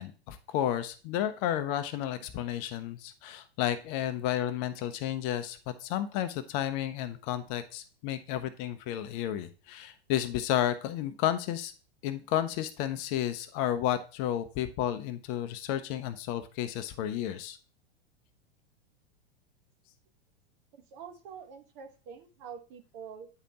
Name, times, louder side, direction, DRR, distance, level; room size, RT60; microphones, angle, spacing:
voice 1, 0.0-11.7 12.0-17.6, left 11 dB, 40° left, 10 dB, 0.7 m, -32 dB
voice 2, 20.7-23.3, right 7 dB, 45° right, 6 dB, 1.3 m, -46 dB
9.0 x 5.1 x 2.9 m, 0.35 s
figure-of-eight pair, 95°, 31 cm